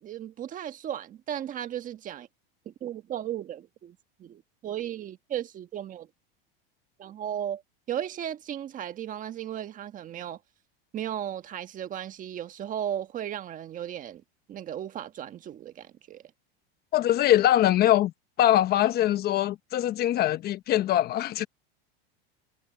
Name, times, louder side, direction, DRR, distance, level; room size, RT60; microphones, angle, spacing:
voice 1, 0.0-2.3 2.6-6.1 7.0-7.6 7.9-10.4 10.9-14.2 14.5-16.2, right 10 dB, 25° right, 1.5 m, -35 dB
voice 2, 16.9-18.1 18.4-21.5, left 13 dB, 35° left, 1.1 m, -22 dB
supercardioid pair, 140°, 29 cm